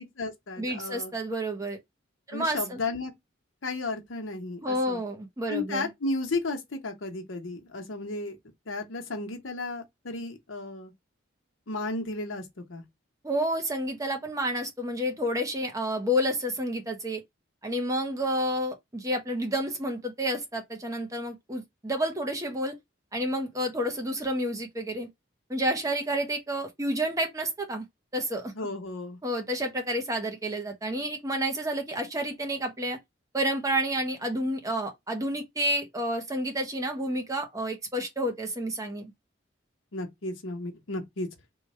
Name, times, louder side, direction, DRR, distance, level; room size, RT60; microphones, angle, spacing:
voice 1, 0.0-1.1 2.3-3.1 3.6-5.0 5.5-8.4 8.7-10.9 11.7-12.8 28.6-29.2 39.9-41.3, left 2 dB, 85° left, 0.9 m, -34 dB
voice 2, 0.6-1.8 2.3-2.8 4.6-5.9 13.2-17.2 17.6-22.8 23.1-25.1 25.5-27.8 28.1-28.5 29.2-33.0 33.3-39.1, equal, 15° right, 0.6 m, -30 dB
3.1 x 2.3 x 4.1 m
head